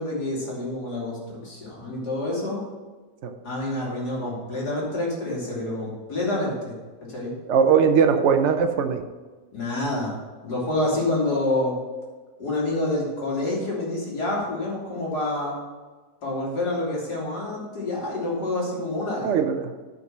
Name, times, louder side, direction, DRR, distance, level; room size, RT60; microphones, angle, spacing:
voice 1, 0.0-2.6 3.4-6.7 7.1-7.3 9.5-10.1 10.4-11.7 12.4-15.6 16.2-19.3, left 2 dB, 70° left, -5 dB, 3.4 m, -27 dB
voice 2, 7.5-9.0 19.2-19.6, right 6 dB, 60° right, 6 dB, 0.8 m, -20 dB
9.6 x 5.3 x 6.1 m, 1.3 s
omnidirectional pair, 1.8 m